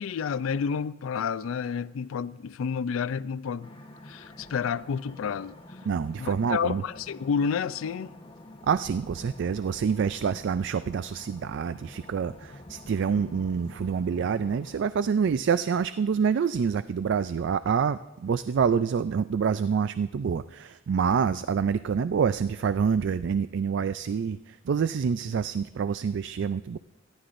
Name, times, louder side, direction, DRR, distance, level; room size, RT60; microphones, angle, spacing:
voice 1, 0.0-3.7 4.0-5.6 6.2-8.1, left 6 dB, 85° left, 0.4 m, -30 dB
sound 1, 3.6-14.9, left 1 dB, 30° left, 1.1 m, -48 dB
voice 2, 5.9-6.8 8.6-26.8, right 6 dB, 65° right, 0.3 m, -27 dB
27.5 x 11.5 x 2.6 m
head